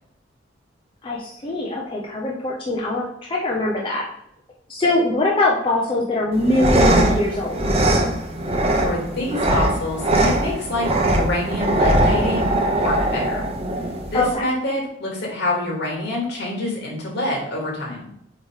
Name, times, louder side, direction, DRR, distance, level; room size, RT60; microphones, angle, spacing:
voice 1, 1.0-4.0 4.7-7.6 14.1-14.4, left 2 dB, 30° left, -3 dB, 1.0 m, -22 dB
sound 1, 6.3-14.3, right 1 dB, 35° right, 1.0 m, -21 dB
voice 2, 8.8-12.5 12.8-13.4 14.1-18.0, left 1 dB, 65° left, -2 dB, 2.6 m, -26 dB
8.5 x 3.3 x 3.8 m, 0.72 s
head